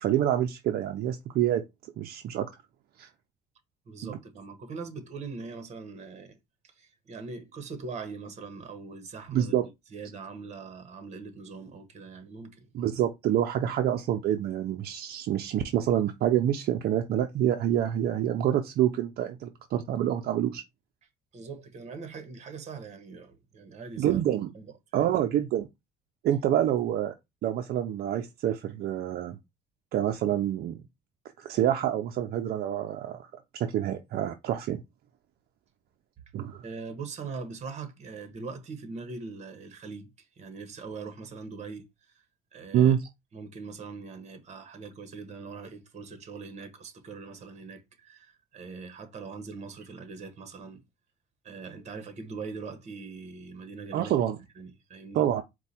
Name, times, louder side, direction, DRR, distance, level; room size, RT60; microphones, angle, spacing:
voice 1, 0.0-1.6 2.0-2.5 3.0-3.1 4.0-4.2 9.3-9.7 12.7-20.6 24.0-24.5 24.9-25.7 26.2-27.1 27.4-29.4 29.9-30.8 31.4-34.8 36.3-36.6 42.7-43.0 53.9-54.4 55.1-55.4, right 11 dB, 65° right, 0.6 m, -27 dB
voice 2, 3.9-6.4 6.6-9.5 9.9-12.7 21.3-24.2 24.5-24.7 24.9-25.1 36.6-42.1 42.5-42.9 43.3-50.8 51.4-54.1 54.6-55.2, right 4 dB, 45° right, 1.2 m, -41 dB
4.6 x 2.3 x 4.2 m
cardioid pair, 110°, 17 cm